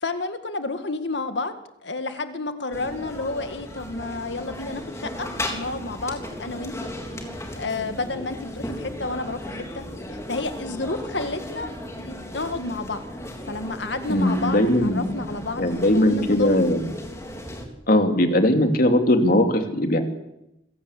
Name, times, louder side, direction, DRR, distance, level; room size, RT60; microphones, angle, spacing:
voice 1, 0.0-1.5 1.8-6.9 7.6-13.0 13.5-16.5, left 3 dB, 75° left, 8 dB, 2.0 m, -31 dB
sound 1, 2.7-17.7, left 1 dB, 15° left, 3.5 m, -36 dB
voice 2, 14.1-15.1 15.6-16.8 17.9-20.0, left 1 dB, 50° left, 5 dB, 2.9 m, -19 dB
27.0 x 17.0 x 8.4 m, 0.87 s
head